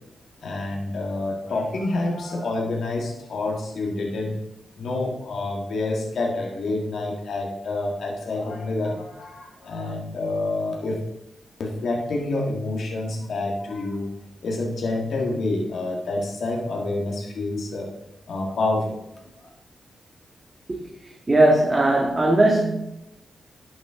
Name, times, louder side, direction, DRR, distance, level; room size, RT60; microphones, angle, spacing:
voice 1, 0.4-4.4 4.8-11.0 11.6-14.1 14.4-17.9 18.3-19.0, left 2 dB, 70° left, 0 dB, 1.7 m, -27 dB
voice 2, 21.3-22.6, right 1 dB, 25° right, -2 dB, 1.7 m, -18 dB
11.0 x 7.3 x 3.7 m, 0.86 s
cardioid pair, 90°, 0 cm